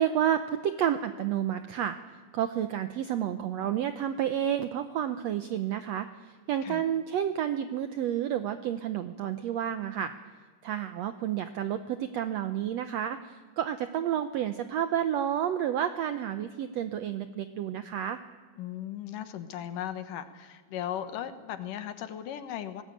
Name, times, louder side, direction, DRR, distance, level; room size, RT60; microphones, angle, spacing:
voice 1, 0.0-2.0 2.3-10.1 10.6-18.2, right 10 dB, 70° right, 10 dB, 1.7 m, -30 dB
voice 2, 18.6-22.8, left 10 dB, 80° left, 10 dB, 2.8 m, -37 dB
20.5 x 19.0 x 9.0 m, 1.5 s
omnidirectional pair, 3.7 m